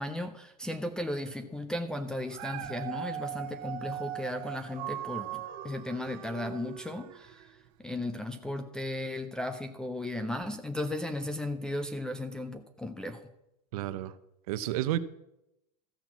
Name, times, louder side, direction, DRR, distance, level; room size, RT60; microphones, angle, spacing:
voice 1, 0.0-7.5 7.8-13.2, left 1 dB, 5° left, 3 dB, 0.3 m, -35 dB
Dog, 2.3-7.5 8.0-8.1, right 11 dB, 45° right, 1.1 m, -39 dB
voice 2, 13.7-14.2 14.5-15.0, right 13 dB, 65° right, 13 dB, 0.8 m, -31 dB
14.0 x 5.9 x 7.1 m, 0.86 s
supercardioid pair, 165°, 20 cm